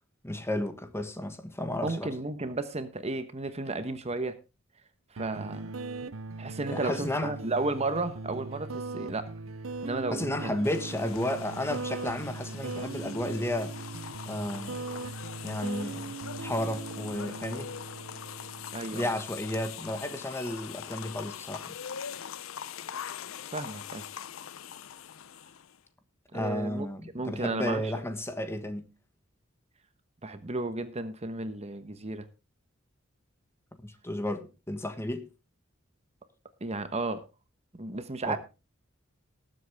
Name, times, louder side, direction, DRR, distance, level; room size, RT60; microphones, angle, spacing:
voice 1, 0.2-2.1 6.7-7.3 10.1-13.7 14.3-14.8 15.4-17.7 18.9-21.8 26.3-28.9 33.8-35.3 38.2-38.4, left 1 dB, 15° left, 1.4 m, -33 dB
voice 2, 1.8-4.4 5.1-5.8 6.4-9.3 9.8-10.6 12.1-12.2 18.7-19.1 23.5-24.0 26.3-26.9 27.1-27.9 30.2-32.2 36.6-37.2 37.8-38.4, right 2 dB, 30° right, 1.1 m, -33 dB
sound 1, 5.2-20.2, right 3 dB, 75° right, 0.6 m, -40 dB
sound 2, 10.6-25.8, left 8 dB, 85° left, 0.6 m, -42 dB
19.5 x 7.9 x 3.5 m
head